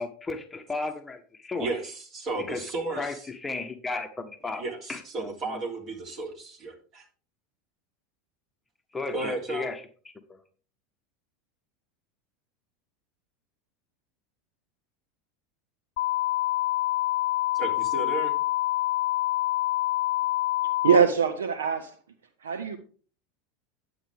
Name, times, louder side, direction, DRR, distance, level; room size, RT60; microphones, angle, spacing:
voice 1, 0.0-1.7 2.5-2.6 2.9-4.6 4.9-5.6 8.9-10.4, left 3 dB, 15° left, 1.1 m, -34 dB
voice 2, 1.6-3.2 4.5-7.0 9.1-9.7 17.5-18.4, right 2 dB, 40° right, 3.3 m, -33 dB
sound 1, 16.0-21.0, left 16 dB, 55° left, 0.4 m, -26 dB
voice 3, 20.8-21.9 22.4-22.8, right 6 dB, 70° right, 0.9 m, -22 dB
10.0 x 8.1 x 3.6 m
figure-of-eight pair, 80°, 0 cm